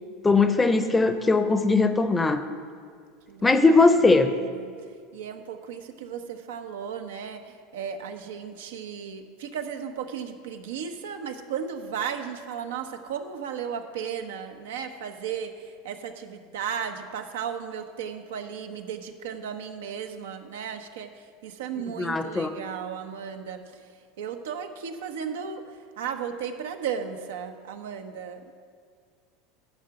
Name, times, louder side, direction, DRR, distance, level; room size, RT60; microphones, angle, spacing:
voice 1, 0.2-2.4 3.4-4.3 22.0-22.5, left 3 dB, 15° left, 10 dB, 0.6 m, -20 dB
voice 2, 3.3-3.9 4.3-4.7 5.1-23.8 24.2-25.6 26.0-28.5, right 7 dB, 85° right, 6 dB, 0.8 m, -35 dB
10.5 x 4.8 x 7.9 m, 2.1 s
supercardioid pair, 120°, 0 cm